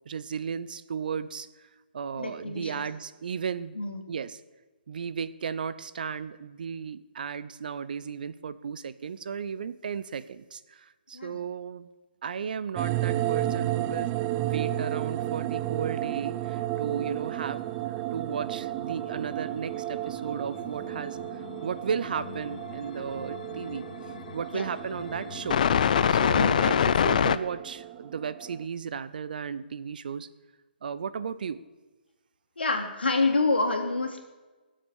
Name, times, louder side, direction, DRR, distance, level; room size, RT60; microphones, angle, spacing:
voice 1, 0.1-1.7 1.9-3.8 4.1-4.4 4.9-11.9 12.2-14.1 14.4-17.6 18.1-23.9 24.3-25.6 26.1-30.3 30.8-31.6, right 6 dB, 55° right, 15 dB, 0.7 m, -35 dB
voice 2, 2.2-2.8 3.7-4.0 11.1-11.4 24.5-24.7 26.3-26.7 32.6-34.3, left 3 dB, 75° left, 4 dB, 2.4 m, -27 dB
sound 1, 12.7-28.6, right 14 dB, 20° right, 0.4 m, -33 dB
sound 2, 19.3-19.4 20.8-21.6 21.9-27.4, left 8 dB, 50° left, 0.6 m, -26 dB
17.0 x 7.6 x 6.4 m, 1.2 s
figure-of-eight pair, 140°, 6 cm